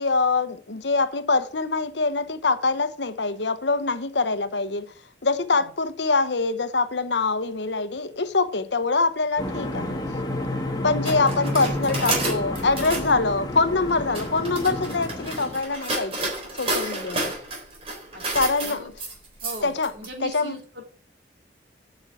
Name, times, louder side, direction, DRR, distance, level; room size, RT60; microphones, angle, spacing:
voice 1, 0.0-4.9 5.2-10.0 10.8-17.3 18.3-18.9 19.6-19.9 20.2-20.6, left 3 dB, 75° left, 1.0 m, -24 dB
sound 1, 9.4-15.6, left 1 dB, 20° left, 1.8 m, -30 dB
sound 2, 11.0-13.1 13.9-20.1, right 2 dB, 30° right, 3.8 m, -30 dB
voice 2, 16.9-17.4 18.1-18.9 19.4-20.8, right 1 dB, 65° right, 3.4 m, -40 dB
8.9 x 6.2 x 8.3 m
head